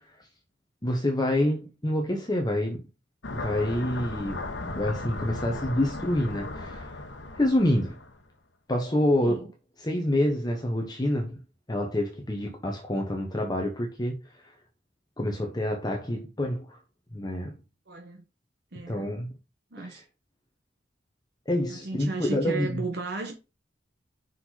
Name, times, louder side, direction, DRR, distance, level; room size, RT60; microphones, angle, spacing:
voice 1, 0.8-2.8 3.3-6.9 7.4-8.0 8.7-9.5 9.8-11.4 11.7-14.5 15.2-16.8 17.1-17.5 18.9-19.3 19.8-19.9 21.5-22.8, left 1 dB, 25° left, 1.2 m, -27 dB
sound 1, 3.2-8.2, left 2 dB, 75° left, 1.1 m, -36 dB
voice 2, 17.9-18.2 18.7-19.1 19.7-20.0 21.7-23.3, right 3 dB, 65° right, 1.4 m, -35 dB
5.9 x 5.4 x 4.2 m
head